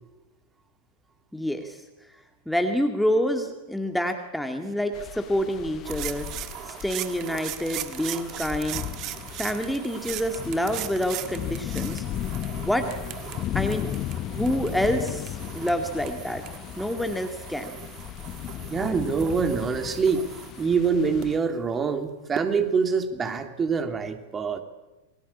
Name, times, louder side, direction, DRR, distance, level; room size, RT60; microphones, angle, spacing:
voice 1, 1.3-1.8 2.5-6.3 6.6-8.8 9.4-12.0 12.6-12.9 13.5-13.9 14.3-16.4 16.8-17.7, equal, ahead, 5 dB, 2.3 m, -27 dB
sound 1, 4.9-21.4, left 12 dB, 35° left, 1.1 m, -36 dB
sound 2, 5.8-21.3 22.4-22.5, right 14 dB, 35° right, 1.7 m, -39 dB
voice 2, 18.7-20.3 20.6-24.6, right 5 dB, 20° right, 7 dB, 3.0 m, -25 dB
28.0 x 23.0 x 8.7 m, 1.1 s
figure-of-eight pair, 90°, 0 cm